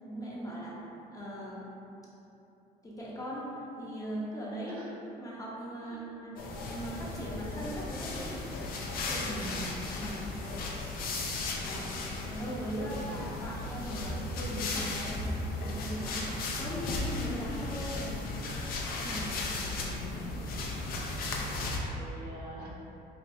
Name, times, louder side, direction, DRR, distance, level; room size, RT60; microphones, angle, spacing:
voice 1, 0.0-0.8 1.1-1.6 2.8-4.8 5.2-8.4 8.9-9.5 10.0-10.3 11.6-11.9 12.3-18.3 18.9-19.4 19.8-19.9, equal, 20° left, -6 dB, 0.7 m, -39 dB
sound 1, 6.4-21.8, left 2 dB, 60° left, 0.5 m, -36 dB
voice 2, 9.3-9.7 12.9-13.3 19.5-20.4 21.9-22.7, right 1 dB, 60° right, -5 dB, 0.8 m, -46 dB
4.4 x 2.5 x 2.6 m, 3.0 s
cardioid pair, 110°, 17 cm